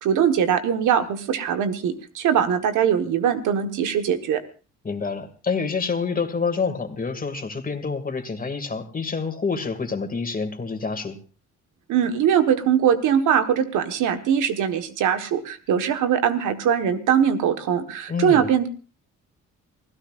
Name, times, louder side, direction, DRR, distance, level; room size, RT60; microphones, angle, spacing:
voice 1, 0.0-4.4 11.9-18.7, right 8 dB, 85° right, 8 dB, 1.6 m, -21 dB
voice 2, 4.8-11.2 18.1-18.5, left 5 dB, 30° left, 7 dB, 2.4 m, -27 dB
27.5 x 16.5 x 2.6 m, 0.34 s
cardioid pair, 90°, 30 cm